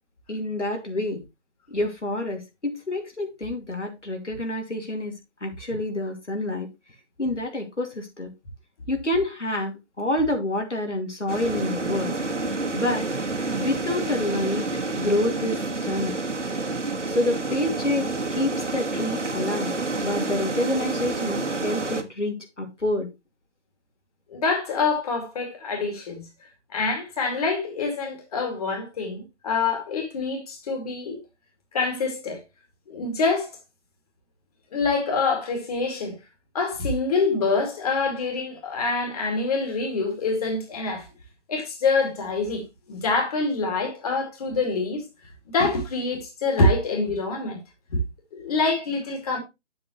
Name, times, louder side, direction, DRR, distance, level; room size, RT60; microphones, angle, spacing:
voice 1, 0.3-1.2 1.7-6.7 7.2-8.3 8.9-12.2 12.7-13.1 13.5-14.6 15.0-16.1 17.0-19.7 20.0-23.1, left 1 dB, 80° left, 2.6 m, -28 dB
sound 1, 11.3-22.0, right 3 dB, 80° right, 1.6 m, -29 dB
voice 2, 24.3-26.2 26.7-31.2 31.7-32.4 32.9-33.6 34.7-36.2 36.5-41.1 41.5-42.6 42.9-45.0 45.5-47.6 47.9-48.0 48.3-49.4, left 3 dB, 30° left, 2.4 m, -25 dB
8.5 x 7.6 x 3.1 m
figure-of-eight pair, 145°, 35 cm